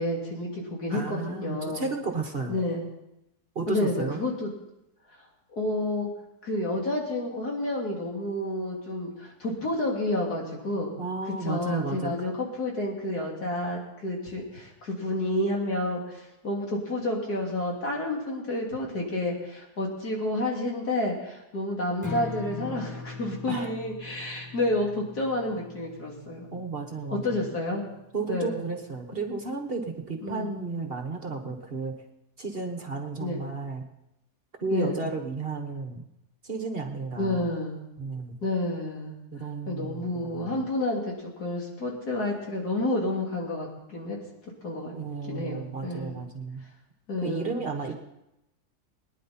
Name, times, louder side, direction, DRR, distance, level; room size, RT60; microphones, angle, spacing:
voice 1, 0.0-1.9 2.5-2.8 3.7-4.5 5.5-6.1 6.4-10.9 11.4-26.5 27.1-27.8 28.3-28.6 30.2-30.5 33.2-33.4 34.7-35.0 37.2-37.8 38.4-39.1 39.7-44.2 44.6-44.9 45.2-46.2 47.1-47.6, left 1 dB, 75° left, -2 dB, 3.5 m, -30 dB
voice 2, 0.9-2.6 3.5-4.2 11.0-12.1 23.5-23.8 26.5-27.4 28.1-31.9 32.4-33.8 34.6-36.0 36.4-37.5 38.0-38.4 39.3-40.6 44.9-46.6 47.2-47.9, right 4 dB, 40° right, 4 dB, 1.4 m, -33 dB
Strum, 22.0-28.3, left 3 dB, 10° left, 1.2 m, -41 dB
22.0 x 10.0 x 4.3 m, 0.86 s
omnidirectional pair, 1.7 m